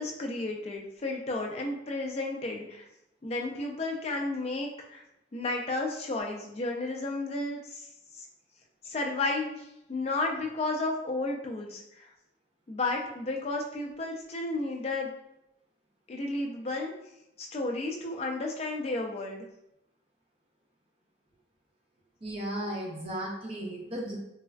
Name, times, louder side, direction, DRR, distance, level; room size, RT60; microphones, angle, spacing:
voice 1, 0.0-2.9 3.2-5.0 5.3-7.8 8.2-8.3 8.8-11.8 12.7-15.1 16.1-16.9 17.4-19.4, left 2 dB, 35° left, 1 dB, 0.4 m, -32 dB
voice 2, 22.2-24.2, right 1 dB, 30° right, -2 dB, 0.6 m, -35 dB
3.2 x 2.3 x 2.2 m, 0.84 s
head